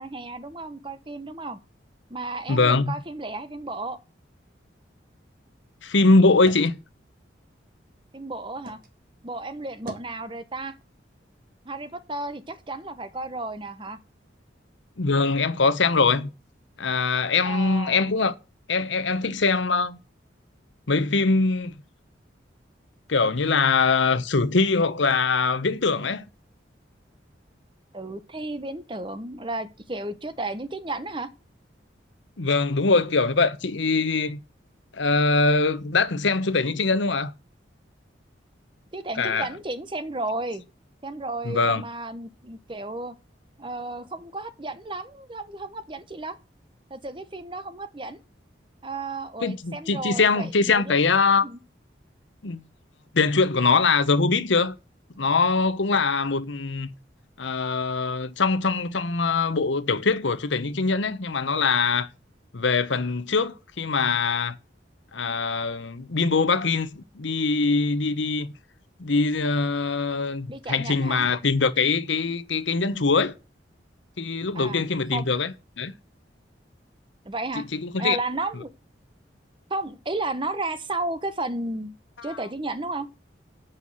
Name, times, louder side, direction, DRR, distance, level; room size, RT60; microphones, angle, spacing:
voice 1, 0.0-1.6 2.1-4.0 8.1-8.8 9.2-10.8 11.6-14.0 17.4-18.0 27.9-31.3 38.9-40.6 41.0-43.2 43.6-46.4 46.9-48.2 48.8-50.9 51.4-51.6 70.5-71.2 74.5-74.8 75.1-75.3 77.3-77.7 78.0-78.7 79.7-82.0 82.2-83.1, right 2 dB, 25° right, 0.9 m, -33 dB
voice 2, 2.5-2.9 5.8-6.7 15.0-16.3 16.8-18.3 18.7-20.0 20.9-21.8 23.1-26.2 32.4-34.4 34.9-37.3 39.2-39.5 41.4-41.8 49.4-51.5 52.4-52.6 53.1-54.7 55.2-56.9 57.4-62.1 62.5-64.6 65.1-68.5 69.0-73.3 74.2-75.9 77.6-78.2 82.3-82.4, left 4 dB, 75° left, 0.9 m, -22 dB
sound 1, 5.1-8.9 9.3-10.2, right 1 dB, 45° right, 1.7 m, -46 dB
7.9 x 5.7 x 7.7 m
head